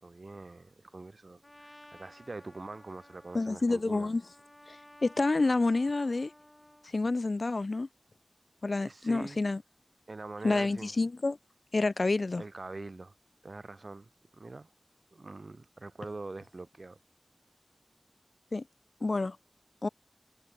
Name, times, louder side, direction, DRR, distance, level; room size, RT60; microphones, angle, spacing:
voice 1, 0.0-4.1 8.8-9.4 10.1-10.9 12.4-13.1 13.4-14.7 15.1-17.0, right 3 dB, 75° right, 1.4 m, -44 dB
Trumpet, 1.4-6.9, left 1 dB, 25° left, 3.9 m, -55 dB
voice 2, 3.3-4.2 4.7-4.8 5.0-6.3 6.9-7.9 8.6-9.6 10.4-11.4 11.7-12.4 18.5-18.6 19.0-19.4 19.8-19.9, left 3 dB, 80° left, 1.0 m, -28 dB
wide cardioid pair, 45°, 0 cm